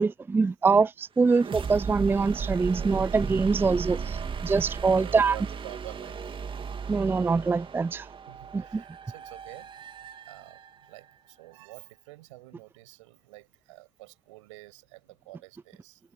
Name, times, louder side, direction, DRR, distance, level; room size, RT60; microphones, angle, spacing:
voice 1, 0.0-5.4 6.9-8.1 8.5-8.8, right 4 dB, 15° right, 0.4 m, -24 dB
sound 1, 1.2-11.0, right 6 dB, 35° right, 2.6 m, -36 dB
voice 2, 4.5-6.4 8.3-10.6 10.9-16.0, right 20 dB, 85° right, 7.1 m, -48 dB
hypercardioid pair, 70°, 16 cm